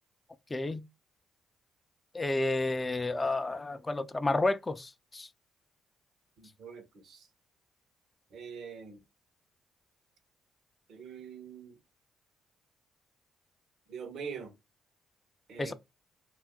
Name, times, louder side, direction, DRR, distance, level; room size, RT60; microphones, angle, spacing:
voice 1, 0.5-0.8 2.1-5.3 15.6-15.7, left 2 dB, 25° left, 0.4 m, -31 dB
voice 2, 6.4-7.3 8.3-9.0 10.9-11.8 13.9-14.5 15.5-15.7, right 6 dB, 70° right, 0.7 m, -44 dB
2.6 x 2.4 x 3.5 m
supercardioid pair, 55°, 0 cm